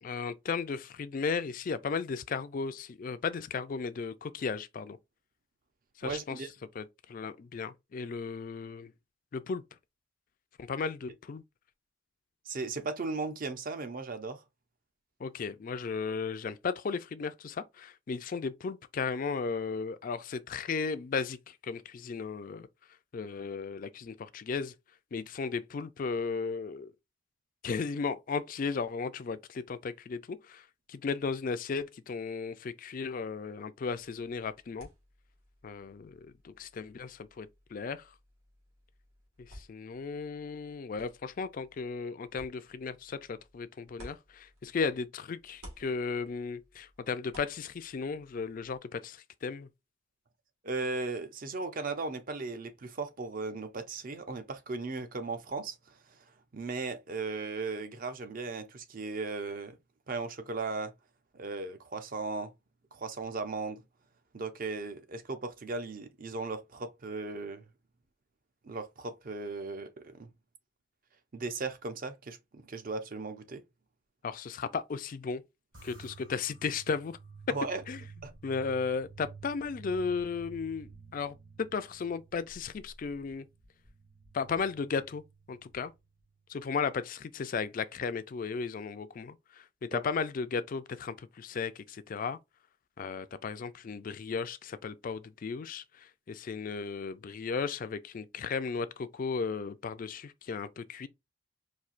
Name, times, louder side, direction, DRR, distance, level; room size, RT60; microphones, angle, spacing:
voice 1, 0.0-5.0 6.0-6.4 6.8-8.9 9.3-9.6 10.6-11.4 15.2-22.7 23.1-24.7 25.1-26.9 27.6-34.9 35.6-38.1 39.4-49.7 74.2-75.4 75.8-77.2 77.9-78.0 78.4-83.5 84.3-85.2 85.5-85.9 86.5-92.4 93.0-101.1, left 5 dB, 40° left, 0.3 m, -35 dB
voice 2, 6.0-6.5 12.5-14.4 50.6-56.3 56.5-59.8 60.1-60.9 61.3-62.5 62.9-63.8 64.3-67.7 68.6-70.3 71.3-73.6 77.5-77.8 78.2-78.3 89.9-90.0, right 3 dB, 40° right, 0.5 m, -37 dB
sound 1, 33.9-45.1 45.4-48.8, equal, 90° right, 1.7 m, -56 dB
sound 2, 75.7-86.3, right 4 dB, 70° right, 1.5 m, -52 dB
4.3 x 2.7 x 2.4 m
head